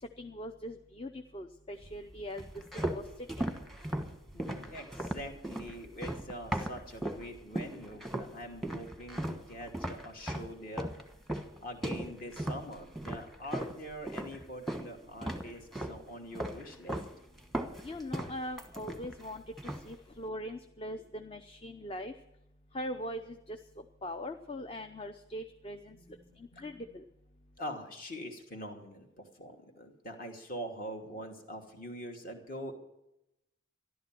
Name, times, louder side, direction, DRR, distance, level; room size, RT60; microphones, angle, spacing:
voice 1, 0.0-2.4 2.7-3.0 3.4-3.5 17.8-22.1 22.7-23.6 24.0-26.0 26.4-27.0, equal, 30° left, 7 dB, 0.6 m, -41 dB
Bass drum, 1.8-7.4, right 1 dB, 70° left, 3.5 m, -56 dB
sound 1, 2.4-7.3 7.6-8.3 8.6-14.9 15.2-16.0 16.4-17.1 17.4-19.3 19.6-19.9, right 1 dB, ahead, 1.2 m, -37 dB
voice 2, 4.3-10.9 11.6-17.0 25.9-26.9 27.6-32.7, equal, 45° left, 3 dB, 2.6 m, -44 dB
14.0 x 11.5 x 7.6 m, 0.87 s
head